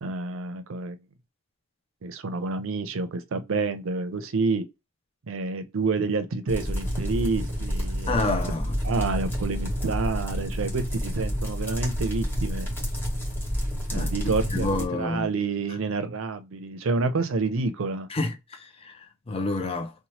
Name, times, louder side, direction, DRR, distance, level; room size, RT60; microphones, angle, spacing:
voice 1, 0.0-1.0 2.0-4.6 5.3-8.3 8.8-12.7 13.9-18.1, right 3 dB, 70° right, 0.5 m, -28 dB
sound 1, 6.5-14.8, equal, 10° left, 1.2 m, -29 dB
voice 2, 8.1-8.7 13.9-14.1 14.5-15.3 18.1-19.9, left 2 dB, 30° left, 0.5 m, -28 dB
2.8 x 2.1 x 3.1 m
head